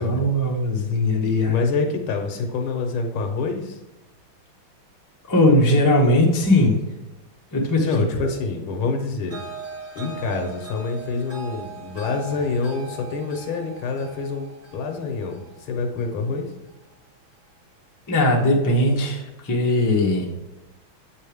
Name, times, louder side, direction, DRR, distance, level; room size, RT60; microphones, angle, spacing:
voice 1, 0.0-1.6 5.3-6.8 7.5-8.3 18.1-20.3, left 1 dB, 15° left, -1 dB, 0.6 m, -19 dB
voice 2, 1.5-3.8 7.8-9.4 10.0-16.5, left 4 dB, 80° left, 4 dB, 1.9 m, -26 dB
sound 1, 9.3-16.4, right 4 dB, 45° right, 1.4 m, -39 dB
7.7 x 5.4 x 3.5 m, 1.0 s
omnidirectional pair, 2.3 m